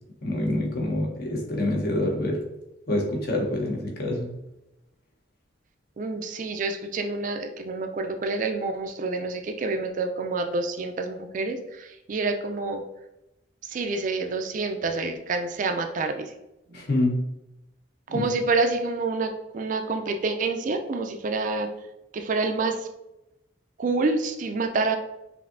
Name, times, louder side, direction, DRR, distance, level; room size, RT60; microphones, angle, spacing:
voice 1, 0.2-2.4 2.9-4.3 16.7-17.2 18.1-18.3, left 1 dB, 55° left, 0 dB, 0.9 m, -26 dB
voice 2, 6.0-12.8 13.6-16.3 16.7-16.8 18.1-21.7 22.1-22.9 23.8-25.0, right 3 dB, 40° right, 6 dB, 0.3 m, -28 dB
5.2 x 2.7 x 2.5 m, 0.92 s
head